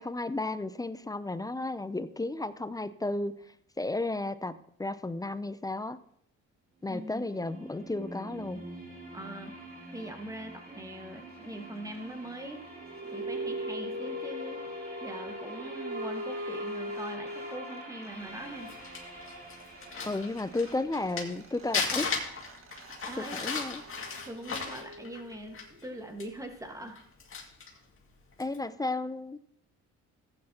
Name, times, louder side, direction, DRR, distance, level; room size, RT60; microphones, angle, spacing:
voice 1, 0.0-3.3 3.8-4.5 4.8-6.0 6.8-8.6 20.0-22.1 23.2-23.8 28.4-29.4, left 2 dB, 10° left, 13 dB, 0.4 m, -33 dB
sound 1, 6.8-22.7, right 1 dB, 30° right, 4.9 m, -47 dB
voice 2, 6.9-7.2 9.1-9.5 9.9-12.7 13.1-14.6 15.0-18.7 23.0-23.4 24.2-27.0, right 1 dB, 10° right, 4 dB, 1.5 m, -42 dB
sound 2, 12.7-18.1 20.0-20.1 20.2-25.7, equal, 45° right, 1.6 m, -40 dB
Crumpling crinkling, 18.4-21.4 21.7-25.9 26.2-26.3 26.9-27.8 28.3-28.6, left 5 dB, 45° left, 2.1 m, -35 dB
14.5 x 8.6 x 2.9 m, 0.69 s
cardioid pair, 90°, 30 cm